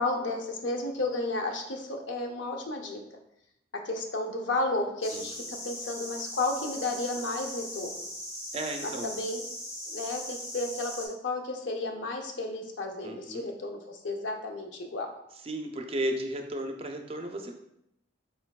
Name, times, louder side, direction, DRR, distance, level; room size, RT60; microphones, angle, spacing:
voice 1, 0.0-3.0 3.8-8.0 8.8-9.4 9.9-15.1, left 2 dB, 70° left, 3 dB, 0.6 m, -32 dB
sound 1, 5.0-11.1, left 1 dB, 15° left, 0.8 m, -39 dB
voice 2, 8.5-9.1 13.0-13.5 15.4-17.5, right 1 dB, 30° right, 4 dB, 0.4 m, -34 dB
4.3 x 3.9 x 2.3 m, 0.79 s
head